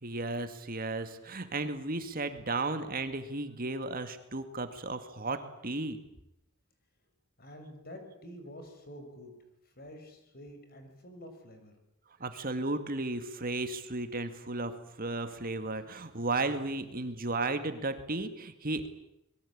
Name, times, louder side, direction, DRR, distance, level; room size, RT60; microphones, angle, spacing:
voice 1, 0.0-6.0 12.2-18.9, right 2 dB, 40° right, 9 dB, 2.1 m, -34 dB
voice 2, 7.4-9.3 9.6-11.7, equal, 45° left, 6 dB, 6.3 m, -48 dB
27.0 x 22.0 x 8.8 m, 0.84 s
head